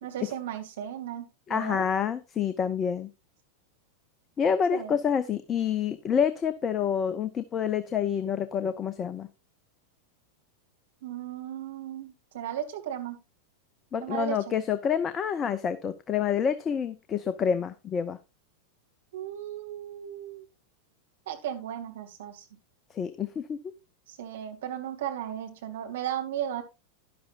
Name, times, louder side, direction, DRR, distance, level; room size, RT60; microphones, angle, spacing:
voice 1, 0.0-1.8 4.7-5.0 11.0-13.2 14.0-14.6 19.1-20.5 21.3-22.4 24.1-26.6, right 10 dB, 60° right, 4 dB, 2.4 m, -35 dB
voice 2, 1.5-3.1 4.4-9.3 13.9-18.2 22.9-23.6, left 7 dB, 25° left, 13 dB, 0.7 m, -28 dB
12.0 x 11.0 x 2.5 m, 0.25 s
figure-of-eight pair, 90°, 0 cm